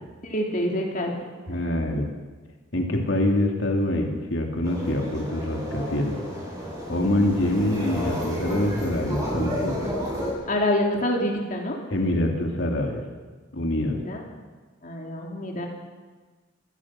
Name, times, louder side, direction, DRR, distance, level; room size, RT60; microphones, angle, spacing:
voice 1, 0.2-1.1 10.5-11.8 13.9-14.2 14.8-15.7, left 1 dB, 45° left, 0 dB, 3.2 m, -26 dB
voice 2, 1.5-2.1 2.7-6.2 6.9-10.0 11.9-13.0 13.5-14.0, left 1 dB, 75° left, 1 dB, 3.1 m, -25 dB
sound 1, 4.6-10.3, equal, 20° right, 8.0 m, -31 dB
27.5 x 16.5 x 6.1 m, 1.4 s
head